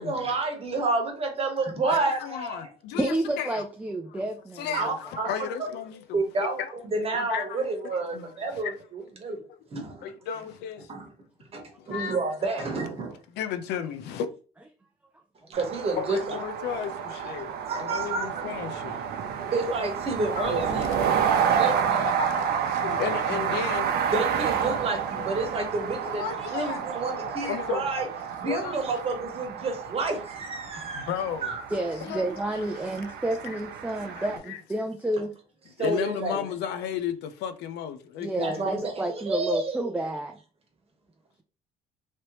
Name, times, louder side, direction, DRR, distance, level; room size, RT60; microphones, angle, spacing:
voice 1, 0.0-2.7 4.7-5.5 6.1-6.6 6.9-9.4 9.7-10.1 10.9-11.1 11.5-13.2 15.5-16.4 17.7-18.3 19.5-21.2 21.5-22.1 24.1-28.1 28.4-31.1 31.4-31.6 35.8-36.4 38.4-39.8, right 3 dB, 35° right, 1.1 m, -30 dB
voice 2, 1.8-3.6 4.1-4.3 4.6-6.2 6.6-6.7 7.1-7.7 8.1-8.7 9.5-9.6 10.0-10.9 11.8-12.2 13.3-14.3 16.0-19.0 19.7-19.8 20.2-23.9 24.7-24.9 25.2-25.3 26.0-28.0 28.4-28.7 30.9-31.5 32.0-32.3 32.6-33.1 33.4-33.6 34.1-34.6 35.8-38.6, left 8 dB, 80° left, 0.5 m, -34 dB
voice 3, 2.9-4.8 15.5-15.6 30.8-31.0 31.7-35.3 38.2-40.4, right 1 dB, 10° right, 0.4 m, -30 dB
sound 1, 15.5-34.4, right 7 dB, 75° right, 0.6 m, -30 dB
3.2 x 2.9 x 2.8 m
cardioid pair, 110°, 17 cm